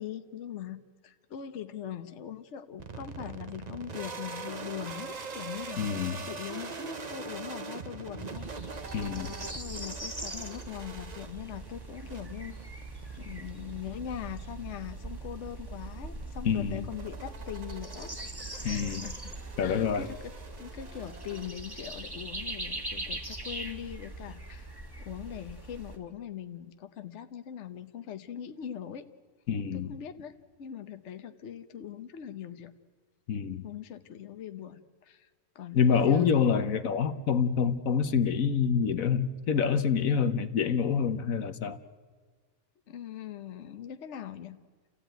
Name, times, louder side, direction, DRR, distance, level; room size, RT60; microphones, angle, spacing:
voice 1, 0.0-8.5 9.1-12.5 13.2-18.1 18.6-19.3 19.6-20.2 20.6-29.1 29.7-30.3 30.6-32.7 33.6-35.3 35.5-36.5 42.9-44.6, left 9 dB, 60° left, 9 dB, 1.1 m, -41 dB
sound 1, 2.8-22.0, right 4 dB, 35° right, 1.0 m, -43 dB
voice 2, 5.8-6.3 8.9-9.4 16.4-16.9 18.6-19.0 19.6-20.1 29.5-29.9 33.3-33.6 35.7-41.8, left 7 dB, 75° left, 9 dB, 1.4 m, -27 dB
sound 2, 8.3-26.0, right 2 dB, 15° right, 1.7 m, -41 dB
29.5 x 15.0 x 9.1 m, 1.5 s
omnidirectional pair, 1.4 m